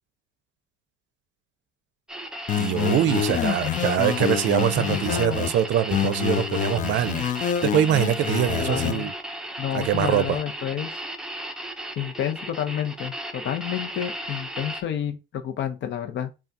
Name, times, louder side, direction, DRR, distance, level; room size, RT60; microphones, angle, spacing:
sound 1, 2.1-14.8, right 1 dB, 5° right, 0.7 m, -35 dB
sound 2, 2.5-5.5 5.9-8.9, left 10 dB, 40° left, 0.4 m, -27 dB
voice 1, 2.6-7.2 7.6-9.1 9.7-10.4, right 11 dB, 60° right, 0.5 m, -23 dB
voice 2, 3.3-3.8 4.8-5.5 8.6-9.1 9.6-11.0 12.0-16.3, left 10 dB, 60° left, 0.8 m, -29 dB
5.6 x 2.4 x 2.7 m
cardioid pair, 110°, 21 cm